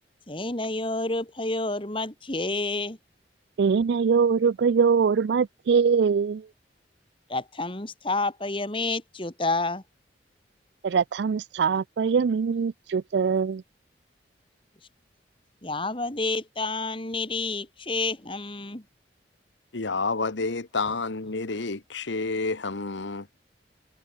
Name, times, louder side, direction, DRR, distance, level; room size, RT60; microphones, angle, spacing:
voice 1, 0.3-3.0 7.3-9.8 15.6-18.8, left 2 dB, 30° left, 2.3 m, -29 dB
voice 2, 3.6-6.5 10.8-13.6, right 6 dB, 70° right, 0.4 m, -23 dB
voice 3, 19.7-23.3, left 3 dB, 85° left, 1.3 m, -29 dB
head